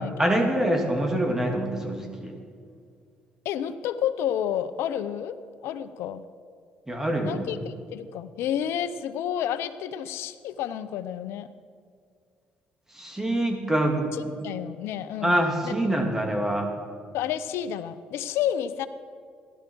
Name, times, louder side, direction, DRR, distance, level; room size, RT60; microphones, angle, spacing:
voice 1, 0.2-2.3 6.9-7.5 12.9-14.4 15.2-16.7, right 1 dB, 10° right, 2 dB, 2.7 m, -25 dB
voice 2, 3.4-6.2 7.2-11.5 14.4-15.4 15.6-15.7 17.1-18.9, left 10 dB, 75° left, 11 dB, 0.7 m, -30 dB
16.5 x 12.0 x 6.2 m, 2.2 s
supercardioid pair, 80°, 4 cm